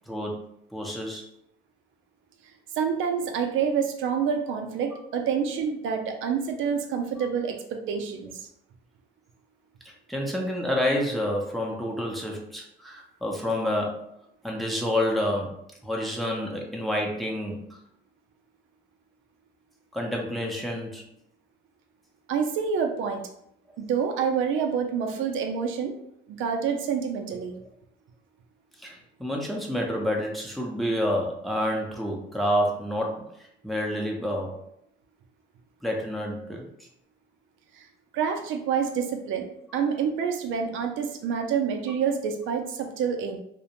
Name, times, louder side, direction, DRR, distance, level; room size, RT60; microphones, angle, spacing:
voice 1, 0.1-1.2 10.1-14.0 14.4-17.8 19.9-21.0 28.8-33.3 33.6-34.6 35.8-36.7, equal, ahead, -1 dB, 0.6 m, -29 dB
voice 2, 2.8-8.3 22.3-23.2 23.8-25.9 26.3-27.6 37.8-37.9 38.1-39.5 39.7-43.4, right 6 dB, 80° right, 4 dB, 0.4 m, -27 dB
2.4 x 2.1 x 2.9 m, 0.74 s
cardioid pair, 90°, 20 cm